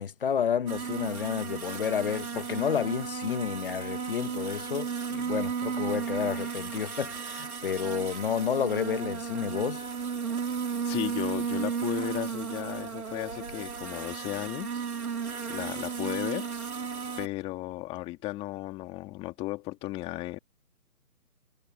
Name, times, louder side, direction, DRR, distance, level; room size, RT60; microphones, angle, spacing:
voice 1, 0.0-9.8, left 7 dB, 35° left, 1.2 m, -30 dB
sound 1, 0.7-17.3, right 6 dB, 70° right, 3.7 m, -34 dB
voice 2, 10.8-14.9 15.5-16.5 17.2-20.4, left 19 dB, 10° left, 2.4 m, -35 dB
figure-of-eight pair, 150°, 45 cm